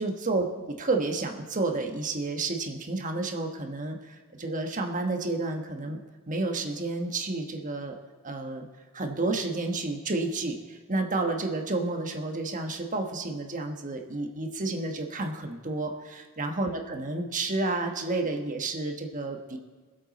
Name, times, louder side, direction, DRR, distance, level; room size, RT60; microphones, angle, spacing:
voice 1, 0.0-6.0 6.3-8.0 8.2-8.7 8.9-15.9 16.4-19.6, right 2 dB, 35° right, 4 dB, 1.2 m, -30 dB
20.5 x 8.0 x 4.1 m, 1.5 s
head